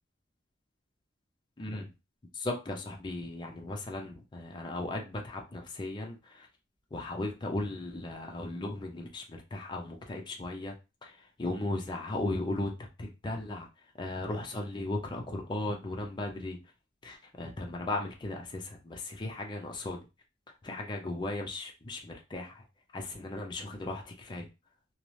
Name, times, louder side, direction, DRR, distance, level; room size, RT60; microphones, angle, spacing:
voice 1, 1.6-1.9 2.3-6.5 6.9-10.7 11.0-12.7 13.0-13.7 14.0-16.6 17.0-20.1 20.6-22.6 22.9-24.5, left 2 dB, 25° left, 1 dB, 0.4 m, -36 dB
2.6 x 2.0 x 3.0 m, 0.28 s
head